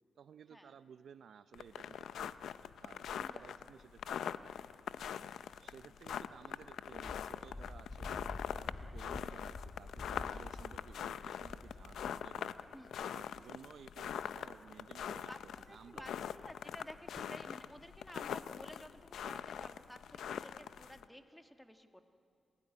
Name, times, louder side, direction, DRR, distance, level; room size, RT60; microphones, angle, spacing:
voice 1, 0.2-2.3 2.6-4.4 5.6-12.5 13.0-16.2, right 7 dB, 70° right, 13 dB, 0.6 m, -56 dB
sound 1, 1.5-21.0, left 9 dB, 90° left, 0.6 m, -43 dB
voice 2, 5.1-5.5 5.8-6.1 10.2-10.5 12.7-12.9 15.3-15.4 15.7-22.1, equal, 5° left, 6 dB, 1.7 m, -53 dB
Wind, 6.9-12.2, left 2 dB, 30° left, 1.1 m, -48 dB
27.5 x 17.0 x 9.8 m, 2.4 s
cardioid pair, 105°, 0 cm